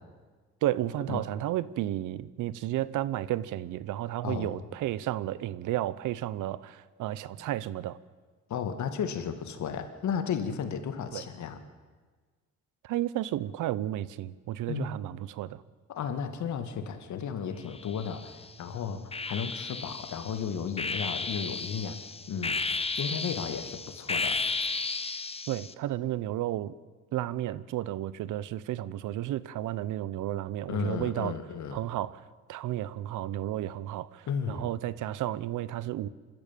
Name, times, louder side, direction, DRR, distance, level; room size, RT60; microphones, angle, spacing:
voice 1, 0.6-8.0 11.1-11.2 12.8-15.6 25.5-26.7 27.1-31.4 31.7-32.2 32.5-36.1, right 13 dB, 85° right, 18 dB, 0.9 m, -32 dB
voice 2, 4.2-4.6 8.5-11.6 14.7-14.9 15.9-22.0 22.3-22.6 23.0-24.4 30.7-31.8 34.3-34.7, left 7 dB, 70° left, 9 dB, 2.3 m, -34 dB
sound 1, 17.7-18.5 19.1-25.7, left 4 dB, 20° left, 1.0 m, -34 dB
25.0 x 13.5 x 9.1 m, 1.4 s
cardioid pair, 90°, 30 cm